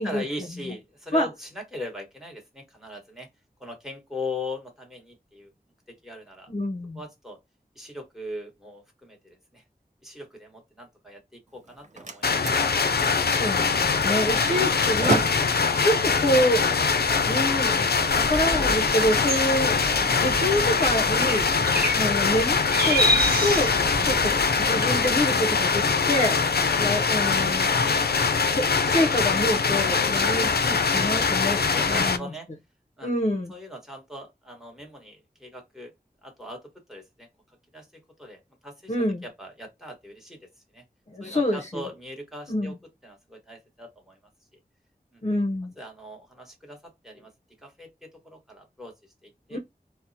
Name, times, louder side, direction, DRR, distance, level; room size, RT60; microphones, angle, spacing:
voice 1, 0.0-3.3 3.6-5.5 5.9-6.5 6.9-7.4 7.7-9.6 10.0-12.6 31.7-32.5 33.0-33.1 33.5-35.9 36.2-38.9 39.2-40.8 41.2-42.7 43.0-44.2 44.5-44.6 45.1-45.2 45.8-47.3 47.6-49.6, left 1 dB, ahead, 1.3 m, -40 dB
voice 2, 6.5-7.0 13.2-15.3 15.8-16.7 17.3-17.9 18.2-21.5 21.9-23.7 24.0-26.4 26.8-27.7 28.5-31.6 31.9-32.3 33.0-33.5 38.9-39.2 41.1-41.8 42.5-42.8 45.2-45.7 49.5-49.6, equal, 45° left, 0.6 m, -27 dB
Slam, 11.5-17.5, right 2 dB, 50° right, 0.5 m, -34 dB
sound 1, 12.2-32.2, left 5 dB, 85° left, 0.4 m, -23 dB
sound 2, 18.1-25.2, equal, 75° right, 0.9 m, -29 dB
4.2 x 2.0 x 2.7 m
wide cardioid pair, 45°, 16 cm